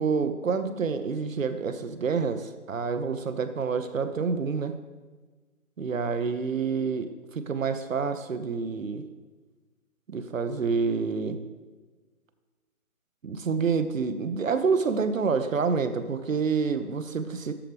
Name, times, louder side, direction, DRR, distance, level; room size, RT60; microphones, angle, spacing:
voice 1, 0.0-4.8 5.8-9.0 10.1-11.4 13.2-17.5, right 5 dB, 65° right, 10 dB, 0.9 m, -28 dB
13.0 x 4.9 x 3.5 m, 1.3 s
figure-of-eight pair, 155°, 42 cm